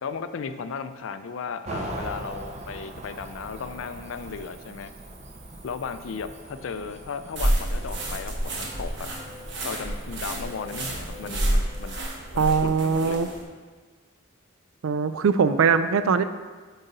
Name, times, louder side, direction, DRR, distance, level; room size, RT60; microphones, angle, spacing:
voice 1, 0.0-4.9 5.6-9.1 9.6-12.1 12.3-13.2, left 5 dB, 70° left, 10 dB, 0.4 m, -35 dB
Cricket / Motor vehicle (road), 1.6-11.4, right 2 dB, 35° right, 0.5 m, -41 dB
sound 1, 7.4-13.4, right 1 dB, 55° right, 1.1 m, -29 dB
voice 2, 12.4-13.3 14.8-16.2, right 5 dB, 80° right, 11 dB, 0.4 m, -21 dB
9.2 x 4.0 x 4.0 m, 1.4 s
head